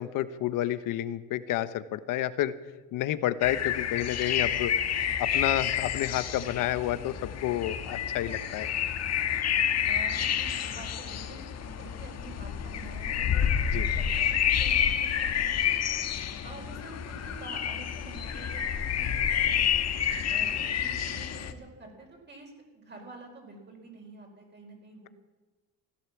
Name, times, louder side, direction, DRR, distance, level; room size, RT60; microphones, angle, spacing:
voice 1, 0.0-2.5 2.9-4.7 5.2-8.7 13.7-13.9, left 13 dB, 70° left, 13 dB, 1.1 m, -30 dB
sound 1, 3.4-21.5, left 8 dB, 50° left, 1.5 m, -29 dB
voice 2, 9.9-13.5 13.7-15.8 16.4-18.6 18.9-19.6 20.3-25.1, right 3 dB, 30° right, 1 dB, 4.7 m, -48 dB
16.0 x 12.0 x 7.3 m, 1.3 s
cardioid pair, 105°, 34 cm